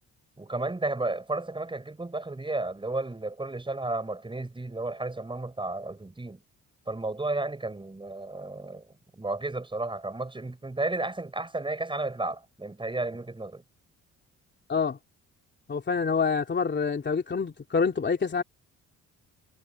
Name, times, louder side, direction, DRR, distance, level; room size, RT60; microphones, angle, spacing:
voice 1, 0.4-6.4 6.9-8.9 9.1-13.6, right 2 dB, 15° right, 5.9 m, -33 dB
voice 2, 15.7-18.4, left 5 dB, 35° left, 3.4 m, -26 dB
cardioid pair, 90°, 30 cm